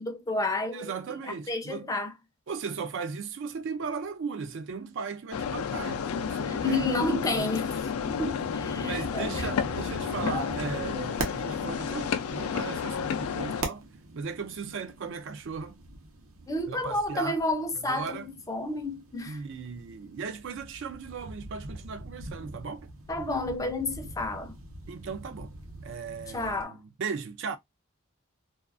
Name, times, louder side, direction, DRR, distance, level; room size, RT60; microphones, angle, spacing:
voice 1, 0.0-1.2 1.5-2.1 6.4-7.7 8.2-9.7 10.2-10.6 16.5-19.4 23.1-24.6 26.3-26.8, left 2 dB, 15° left, 0.4 m, -31 dB
voice 2, 0.7-1.9 2.5-6.9 7.4-7.6 8.8-13.8 14.2-15.8 16.7-17.4 17.9-18.3 19.3-22.9 24.9-25.5 25.8-27.6, right 5 dB, 60° right, 0.4 m, -37 dB
sound 1, 5.3-13.6, left 7 dB, 90° left, 0.4 m, -31 dB
sound 2, 8.0-26.6, right 2 dB, 75° right, 0.8 m, -43 dB
2.4 x 2.3 x 2.4 m
head